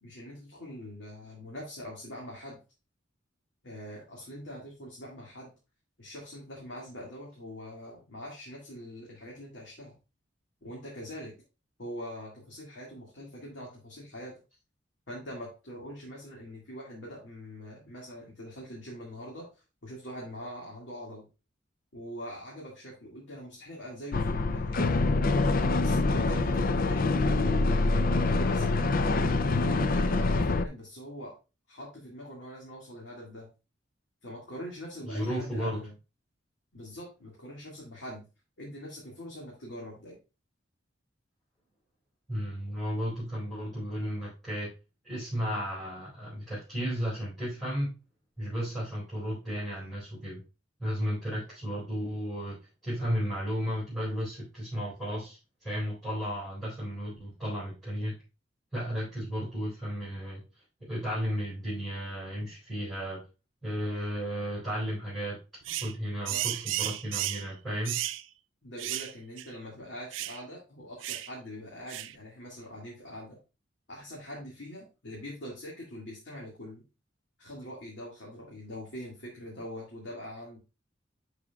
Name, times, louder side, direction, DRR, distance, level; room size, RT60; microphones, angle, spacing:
voice 1, 0.0-2.6 3.6-5.5 6.0-9.9 10.6-11.3 11.8-14.3 15.1-21.3 21.9-24.9 25.8-27.1 27.8-29.0 29.5-31.4 31.7-33.5 34.2-35.9 36.7-38.3 38.6-40.2 66.3-66.5 68.6-73.4 73.9-76.8 77.4-80.6, equal, 70° left, -4 dB, 2.1 m, -43 dB
sound 1, 24.1-30.6, left 3 dB, 50° left, 0.5 m, -25 dB
voice 2, 35.0-35.8 42.3-44.7 45.0-47.9 48.4-50.4 50.8-52.6 52.8-58.1 58.7-60.4 60.9-63.2 63.6-65.4 65.7-68.0, equal, ahead, -10 dB, 4.5 m, -34 dB
sound 2, 65.7-65.9 66.3-67.5 67.9-68.2 68.8-69.1 69.4-69.5 70.1-70.4 71.0-71.3 71.9-72.2, right 14 dB, 80° right, 0.4 m, -33 dB
11.0 x 4.9 x 2.3 m, 0.30 s
head